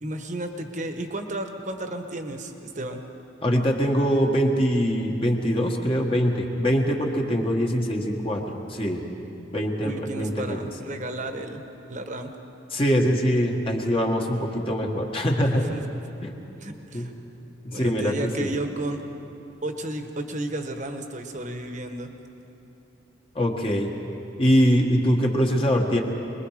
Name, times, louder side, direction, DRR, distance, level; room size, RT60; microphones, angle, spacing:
voice 1, 0.0-3.0 9.8-11.6 11.9-12.3 15.5-15.8 16.6-17.1 17.7-19.0 19.6-22.1, right 1 dB, 40° right, 5 dB, 1.3 m, -32 dB
voice 2, 3.4-8.4 8.7-9.0 9.5-10.6 12.7-15.6 16.2-16.4 16.9-17.1 17.6-18.5 23.3-23.9 24.4-26.0, equal, 30° left, 0 dB, 1.5 m, -23 dB
24.0 x 21.5 x 5.0 m, 3.0 s
head